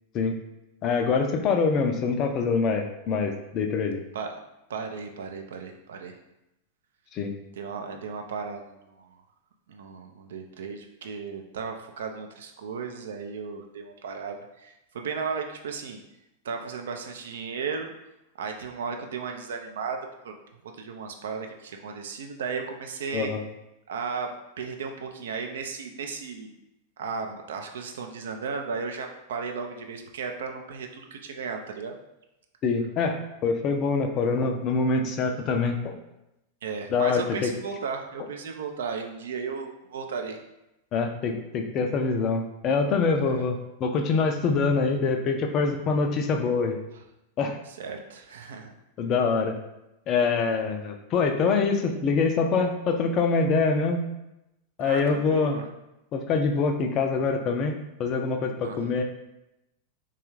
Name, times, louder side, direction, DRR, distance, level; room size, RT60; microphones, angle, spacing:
voice 1, 0.8-4.0 7.1-7.3 23.1-23.4 32.6-35.9 36.9-37.5 40.9-46.8 47.4-47.6 49.0-49.6 50.1-54.1 54.8-55.6 56.1-59.0, left 4 dB, 35° left, 4 dB, 0.4 m, -25 dB
voice 2, 4.7-6.2 7.6-9.2 9.7-16.0 16.4-17.9 18.4-20.0 20.2-20.4 20.8-23.3 23.9-24.3 24.6-26.5 27.0-31.9 36.6-40.4 43.2-43.4 47.7-48.7 54.8-55.7 58.6-58.8, right 5 dB, 60° right, 4 dB, 0.4 m, -35 dB
3.3 x 2.3 x 3.0 m, 0.90 s
figure-of-eight pair, 90°, 0 cm